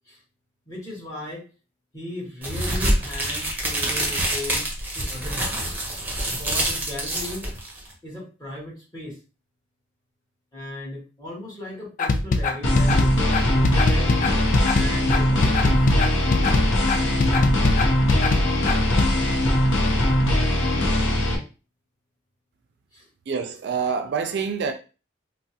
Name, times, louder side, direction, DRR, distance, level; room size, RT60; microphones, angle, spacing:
voice 1, 0.7-1.4 1.9-4.6 4.9-5.4 6.4-7.5 8.0-9.2 10.5-14.3 14.7-15.9 22.9-23.1, left 1 dB, 20° left, 1.3 m, -36 dB
sound 1, 2.4-7.9, right 1 dB, 10° right, 0.8 m, -26 dB
sound 2, 12.0-19.1, left 3 dB, 40° left, 0.3 m, -22 dB
sound 3, 12.6-21.4, left 1 dB, 80° left, 0.7 m, -21 dB
voice 2, 23.3-24.7, right 5 dB, 60° right, 0.3 m, -26 dB
3.3 x 2.1 x 2.7 m
head